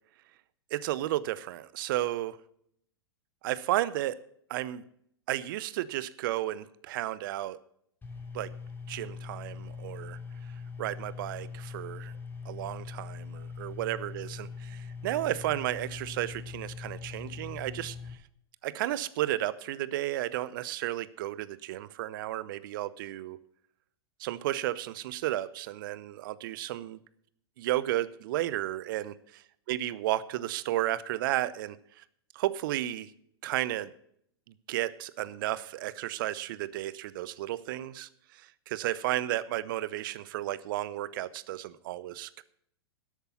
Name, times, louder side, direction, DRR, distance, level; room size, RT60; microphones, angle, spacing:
voice 1, 0.7-2.4 3.4-4.2 4.5-4.8 5.3-7.6 8.3-8.5 8.9-10.2 10.8-12.1 12.4-18.0 18.6-23.4 24.2-27.0 27.6-29.1 29.7-32.0 32.3-33.1 33.4-33.9 34.7-42.4, right 14 dB, 55° right, 17 dB, 0.7 m, -33 dB
sound 1, 8.0-18.1, left 5 dB, 15° left, 3.1 m, -42 dB
12.5 x 8.2 x 5.7 m, 0.68 s
figure-of-eight pair, 100°, 13 cm